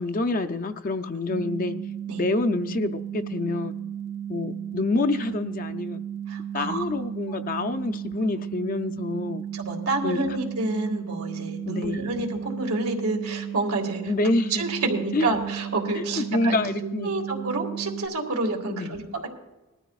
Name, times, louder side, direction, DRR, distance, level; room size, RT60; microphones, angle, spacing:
voice 1, 0.0-1.8 2.2-3.7 4.3-6.0 6.5-9.4 10.0-10.2 11.7-12.1 14.1-14.6 15.1-15.3 16.0-17.1 18.7-19.0, left 2 dB, 40° left, 9 dB, 0.5 m, -27 dB
sound 1, 1.3-18.1, right 9 dB, 55° right, 0.6 m, -34 dB
voice 2, 6.3-6.8 9.5-14.1 14.5-19.3, right 2 dB, 90° right, 2 dB, 2.0 m, -29 dB
20.0 x 13.5 x 2.4 m, 1.1 s
head